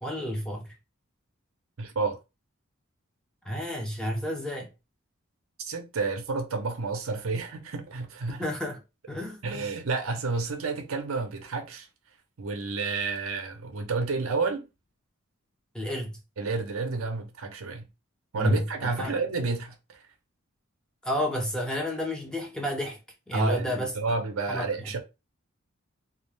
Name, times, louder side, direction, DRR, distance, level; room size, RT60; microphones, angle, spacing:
voice 1, 0.0-0.7 3.4-4.7 8.4-8.8 9.1-9.7 15.7-16.2 18.4-19.2 21.0-23.0 23.3-23.9 24.5-24.9, equal, 5° left, 0.5 m, -30 dB
voice 2, 1.8-2.2 5.6-8.5 9.4-11.9 12.4-14.7 16.4-17.9 18.3-20.0 23.3-25.0, right 4 dB, 75° right, 0.6 m, -30 dB
2.4 x 2.1 x 3.1 m
head